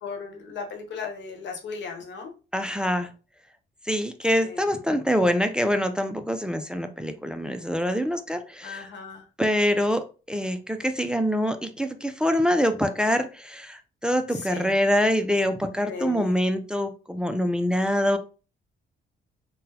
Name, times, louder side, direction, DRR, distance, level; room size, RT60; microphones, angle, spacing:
voice 1, 0.0-2.3 4.4-4.6 8.6-9.2 14.3-14.7 15.9-16.3, left 5 dB, 65° left, 1.0 m, -36 dB
voice 2, 2.5-3.1 3.8-8.9 9.4-18.2, equal, 5° right, 0.4 m, -25 dB
3.8 x 2.2 x 2.8 m
cardioid pair, 90°, 20 cm